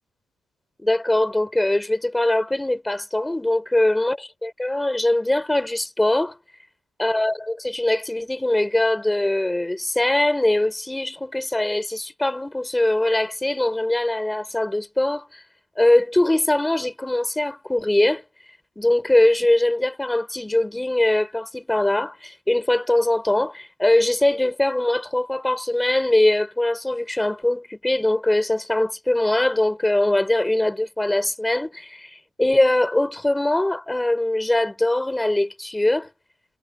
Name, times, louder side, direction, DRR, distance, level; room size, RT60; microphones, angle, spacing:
voice 1, 0.8-6.4 7.0-15.4 15.8-18.2 18.8-36.1, left 1 dB, 10° left, 5.4 m, -22 dB
cardioid pair, 90°, 0 cm